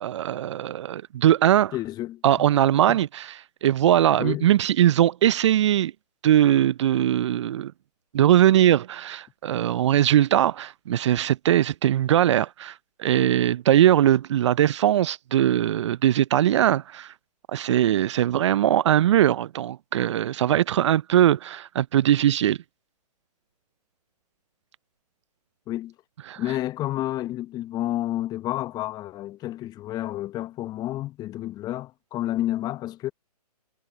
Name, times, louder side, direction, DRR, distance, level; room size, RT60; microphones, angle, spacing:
voice 1, 0.0-1.7 2.2-3.3 3.6-5.9 6.2-7.7 8.1-12.7 13.0-17.1 17.5-22.6 26.3-26.4, right 11 dB, 45° right, 0.6 m, -20 dB
voice 2, 1.7-2.2 2.9-3.0 4.2-4.5 25.7-25.9 26.4-33.1, left 14 dB, 20° left, 1.2 m, -30 dB
figure-of-eight pair, 130°, 20 cm